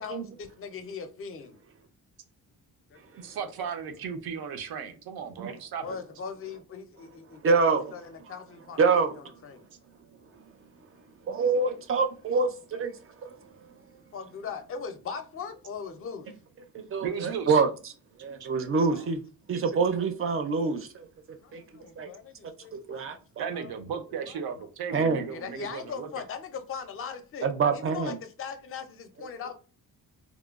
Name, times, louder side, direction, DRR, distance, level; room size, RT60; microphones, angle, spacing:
voice 1, 0.0-1.6 2.9-3.0 5.8-7.4 7.7-8.8 9.1-9.7 14.1-16.3 18.9-19.1 21.4-23.1 23.5-23.7 24.3-24.4 24.8-25.0 25.3-29.5, left 6 dB, 40° left, 0.4 m, -40 dB
voice 2, 3.2-6.0 17.0-17.6 18.4-18.5 19.5-19.6 23.4-26.1, right 7 dB, 90° right, 0.6 m, -36 dB
voice 3, 7.4-7.8 8.8-9.1 11.3-12.9 13.2-13.4 16.7-17.7 18.2-19.2 19.5-21.1 21.5-21.6 22.0-22.1 22.7-23.4 24.9-25.2 27.4-28.2, right 4 dB, 40° right, 0.4 m, -26 dB
2.9 x 2.2 x 2.3 m
wide cardioid pair, 145°, 36 cm